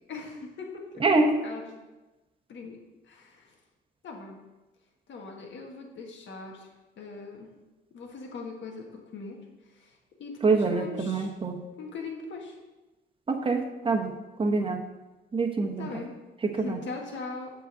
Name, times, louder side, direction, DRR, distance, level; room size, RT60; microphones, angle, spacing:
voice 1, 0.0-1.8 2.5-2.8 3.1-3.5 4.0-4.4 5.1-6.7 7.0-7.5 7.9-9.4 9.7-11.3 11.8-12.6 15.8-16.1 16.5-17.5, left 4 dB, 65° left, 0 dB, 1.5 m, -40 dB
voice 2, 1.0-1.3 10.4-11.6 13.3-14.8 15.3-15.9 16.4-16.8, right 3 dB, 25° right, 4 dB, 1.0 m, -25 dB
7.8 x 4.0 x 6.1 m, 1.1 s
cardioid pair, 90°, 20 cm